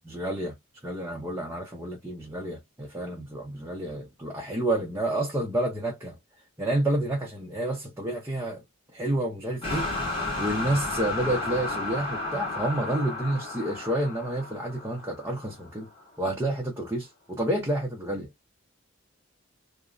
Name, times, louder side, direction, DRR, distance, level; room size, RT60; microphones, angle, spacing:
voice 1, 0.0-0.5 0.8-6.2 6.6-8.6 8.9-15.9 16.2-18.3, right 1 dB, 10° right, 0.6 m, -29 dB
sound 1, 9.6-15.7, left 2 dB, 25° left, 1.2 m, -33 dB
2.9 x 2.1 x 2.4 m
head